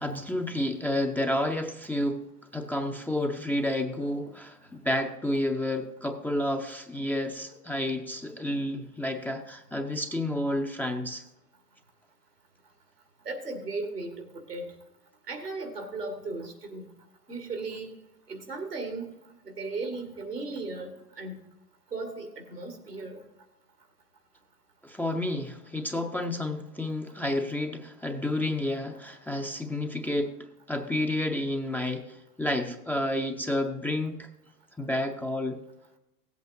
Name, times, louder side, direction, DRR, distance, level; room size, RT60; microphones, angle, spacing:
voice 1, 0.0-2.2 2.5-11.2 24.8-30.3 30.7-34.3 34.8-35.6, left 1 dB, 5° left, 4 dB, 0.5 m, -30 dB
voice 2, 13.3-14.7 15.3-16.9 17.3-17.9 18.3-19.1 19.5-21.4 21.9-23.2, right 3 dB, 85° right, 5 dB, 2.0 m, -36 dB
17.0 x 8.2 x 2.7 m, 0.87 s
figure-of-eight pair, 85°, 46 cm